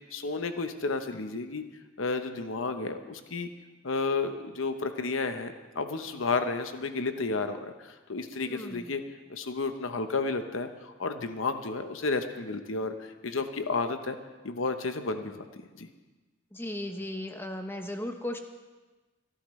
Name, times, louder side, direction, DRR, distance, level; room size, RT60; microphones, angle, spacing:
voice 1, 0.1-1.6 2.0-3.5 3.8-9.0 9.3-14.2 14.4-15.5 15.8-15.9, left 3 dB, 75° left, 8 dB, 0.9 m, -32 dB
voice 2, 8.5-8.9 16.5-18.4, left 1 dB, 10° left, 6 dB, 0.8 m, -36 dB
30.0 x 11.0 x 3.2 m, 1.2 s
head